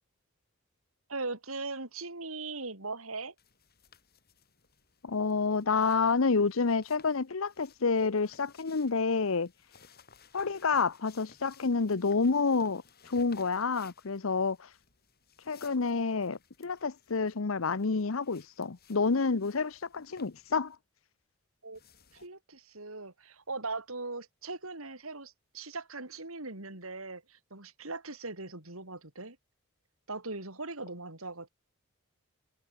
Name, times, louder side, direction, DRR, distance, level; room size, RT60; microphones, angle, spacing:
voice 1, 1.1-3.3 21.6-21.8 22.1-29.4 30.1-31.5, right 3 dB, 85° right, 5.3 m, -40 dB
sound 1, 3.4-20.8 21.7-22.3, left 6 dB, 45° left, 7.2 m, -61 dB
voice 2, 5.0-9.5 10.3-14.7 15.5-20.8, left 4 dB, 75° left, 0.8 m, -29 dB
head